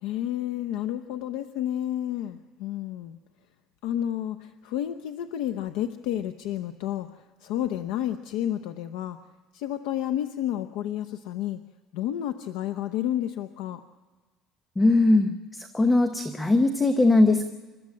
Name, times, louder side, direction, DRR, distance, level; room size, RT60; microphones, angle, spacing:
voice 1, 0.0-3.2 3.8-9.2 9.5-11.6 11.9-13.8, left 11 dB, 80° left, 8 dB, 0.8 m, -31 dB
voice 2, 14.8-17.4, left 2 dB, 10° left, 7 dB, 0.9 m, -20 dB
29.0 x 13.5 x 7.4 m, 1.3 s
cardioid pair, 170°, 0 cm